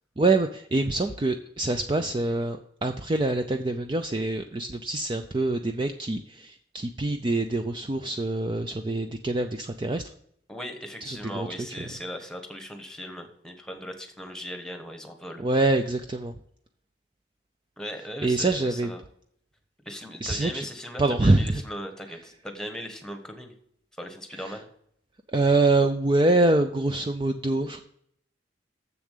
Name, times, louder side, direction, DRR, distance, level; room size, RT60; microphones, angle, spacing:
voice 1, 0.2-10.0 11.0-11.5 11.8-11.9 15.4-16.3 18.2-18.9 20.2-20.6 21.0-21.6 24.3-24.6 25.3-27.8, right 2 dB, 25° right, 6 dB, 0.4 m, -25 dB
voice 2, 10.5-15.4 17.8-19.0 19.8-23.6 24.0-24.7, equal, 5° left, 5 dB, 1.2 m, -38 dB
7.3 x 7.0 x 6.6 m, 0.67 s
head